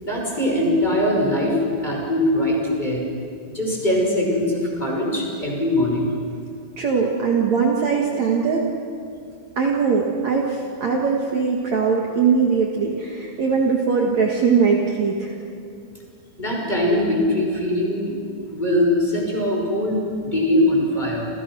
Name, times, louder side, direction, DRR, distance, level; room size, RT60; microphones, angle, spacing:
voice 1, 0.0-3.0 3.5-6.1 16.4-18.1 18.5-21.3, left 1 dB, 10° left, -1 dB, 5.9 m, -21 dB
voice 2, 6.8-8.7 9.6-15.4, right 5 dB, 50° right, 0 dB, 2.8 m, -21 dB
29.5 x 29.0 x 6.3 m, 2.3 s
omnidirectional pair, 4.4 m